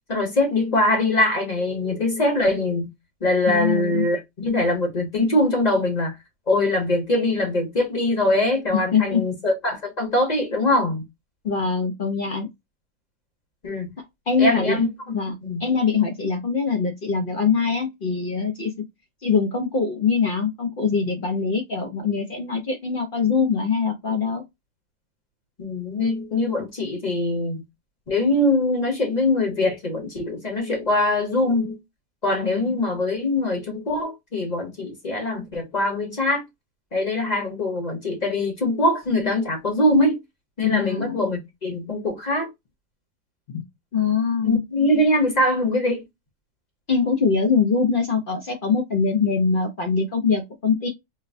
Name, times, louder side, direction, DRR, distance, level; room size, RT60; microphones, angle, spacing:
voice 1, 0.1-2.9 3.2-6.1 6.5-11.0 13.6-13.9 14.4-14.9 15.4-15.7 25.6-27.6 28.1-31.8 32.2-36.4 36.9-40.2 40.6-42.5 44.4-46.0, left 1 dB, 30° left, 0.8 m, -22 dB
voice 2, 3.5-4.1 8.7-9.2 11.4-12.5 14.3-14.8 15.1-18.7 19.2-24.4 32.4-32.8 40.6-41.3 43.5-43.6 43.9-44.6 46.9-50.9, left 5 dB, 65° left, 0.5 m, -23 dB
4.3 x 2.1 x 2.5 m
omnidirectional pair, 1.8 m